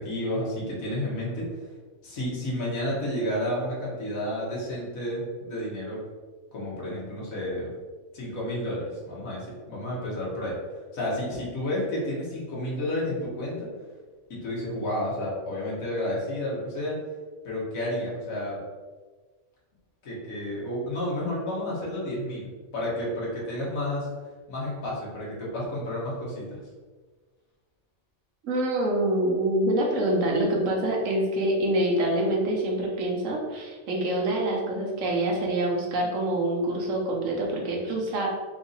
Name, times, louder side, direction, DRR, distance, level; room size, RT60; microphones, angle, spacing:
voice 1, 0.0-1.7 2.0-6.0 6.5-7.7 8.1-10.5 10.9-13.7 14.3-16.9 17.4-18.6 20.0-24.1 24.5-26.6, left 1 dB, 80° left, -6 dB, 1.6 m, -31 dB
voice 2, 28.4-38.3, right 1 dB, 70° right, -1 dB, 1.2 m, -26 dB
3.9 x 2.6 x 3.9 m, 1.4 s
omnidirectional pair, 1.4 m